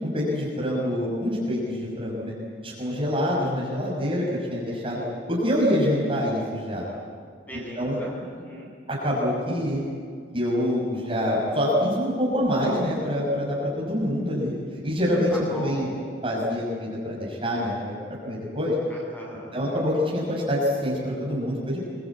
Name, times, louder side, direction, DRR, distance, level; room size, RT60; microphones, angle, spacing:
voice 1, 0.0-2.3 2.6-5.0 5.3-6.8 7.5-8.0 8.9-9.8 10.3-16.0 16.2-17.9 18.2-18.7 19.5-21.8, equal, 30° right, -4 dB, 5.9 m, -26 dB
voice 2, 7.5-8.7 15.3-16.0 18.9-19.5, equal, 10° left, -2 dB, 7.9 m, -39 dB
26.0 x 23.5 x 8.5 m, 2.2 s
head